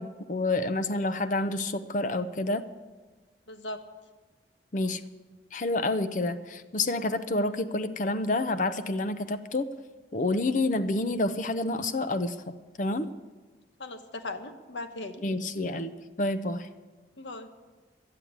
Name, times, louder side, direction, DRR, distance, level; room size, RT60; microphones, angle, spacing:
voice 1, 0.0-2.7 4.7-5.1 5.5-9.7 10.1-12.3 12.8-13.1 15.2-16.7, left 2 dB, 45° left, 11 dB, 0.6 m, -28 dB
voice 2, 3.5-3.8 13.8-15.2 17.2-17.5, left 2 dB, 90° left, 8 dB, 1.2 m, -38 dB
12.5 x 9.8 x 8.7 m, 1.3 s
head